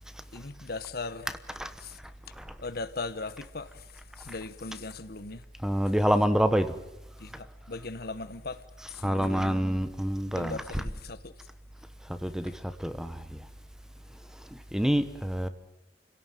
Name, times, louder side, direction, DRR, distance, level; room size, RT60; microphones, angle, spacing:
voice 1, 0.3-1.3 1.8-2.0 2.6-5.4 7.2-9.8 10.3-11.3 12.4-12.5, left 3 dB, 60° left, 1.3 m, -39 dB
voice 2, 5.6-6.8 9.0-10.8 12.0-13.5 14.4-15.5, equal, 5° right, 1.1 m, -27 dB
29.5 x 17.0 x 9.2 m
head